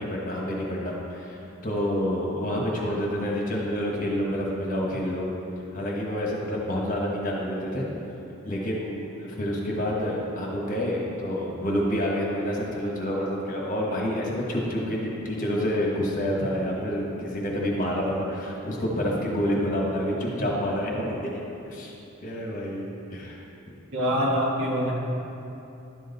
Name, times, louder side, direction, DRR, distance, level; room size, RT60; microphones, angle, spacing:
voice 1, 0.0-1.4 1.6-5.3 5.7-7.9 8.4-21.4 21.7-21.9 22.2-23.4, equal, 40° left, -2 dB, 1.3 m, -28 dB
voice 2, 23.9-24.9, equal, 65° right, -3 dB, 1.6 m, -24 dB
11.0 x 6.4 x 4.1 m, 2.9 s
head